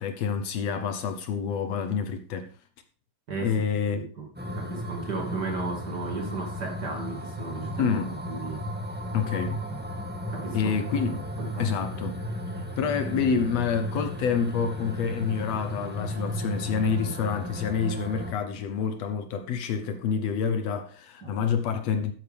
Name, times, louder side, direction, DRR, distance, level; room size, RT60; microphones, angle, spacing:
voice 1, 0.0-2.5 3.4-4.1 7.8-8.2 9.1-9.6 10.5-11.2 11.6-12.2 12.8-22.1, left 6 dB, 70° left, 2.0 m, -28 dB
voice 2, 3.3-3.6 4.0-8.6 9.4-9.8 10.3-10.7 11.1-11.7 21.2-21.3, right 3 dB, 40° right, 2.2 m, -35 dB
sound 1, 4.3-18.3, equal, 10° right, 0.7 m, -34 dB
12.5 x 8.9 x 3.4 m
omnidirectional pair, 3.3 m